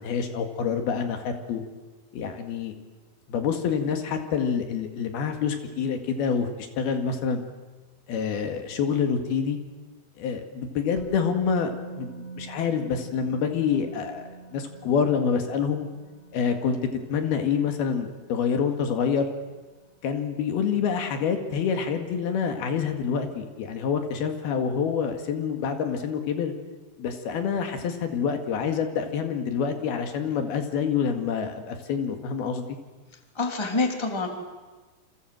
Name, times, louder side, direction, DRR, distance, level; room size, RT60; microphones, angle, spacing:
voice 1, 0.0-1.6 2.1-2.8 3.3-7.5 8.1-9.6 10.2-15.9 16.3-16.8 17.1-19.3 20.0-26.5 27.0-32.7, left 6 dB, 75° left, 6 dB, 3.8 m, -27 dB
Musical instrument, 11.0-18.9 19.1-19.3, right 4 dB, 30° right, 4.1 m, -44 dB
voice 2, 33.3-34.3, left 3 dB, 5° left, 3 dB, 2.7 m, -26 dB
29.0 x 26.0 x 7.8 m, 1.3 s
omnidirectional pair, 4.6 m